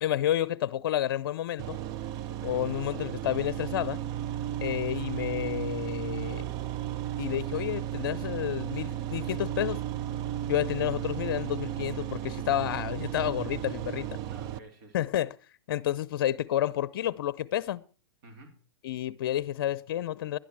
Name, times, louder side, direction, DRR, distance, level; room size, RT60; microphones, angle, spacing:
voice 1, 0.0-1.8 2.4-4.0 4.6-6.5 7.2-9.8 10.5-14.2 14.9-15.3 15.7-17.8 18.8-20.4, left 12 dB, 60° left, 0.6 m, -30 dB
sound 1, 1.6-14.6, right 11 dB, 30° right, 0.6 m, -34 dB
voice 2, 2.2-3.1 14.3-15.1 18.2-18.7, right 2 dB, 50° right, 3.4 m, -52 dB
11.5 x 10.5 x 4.7 m
hypercardioid pair, 130°, 13 cm